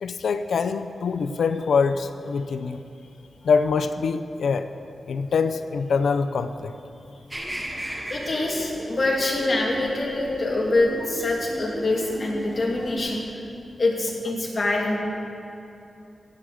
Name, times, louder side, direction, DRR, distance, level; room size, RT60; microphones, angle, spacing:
voice 1, 0.0-2.8 3.4-4.7 5.1-6.7, left 5 dB, 80° left, 8 dB, 0.5 m, -24 dB
sound 1, 7.3-13.0, equal, 15° right, 1.8 m, -36 dB
voice 2, 8.1-13.2 13.8-15.0, left 2 dB, 45° left, -2 dB, 2.7 m, -25 dB
16.0 x 6.4 x 7.7 m, 2.7 s
cardioid pair, 80°, 0 cm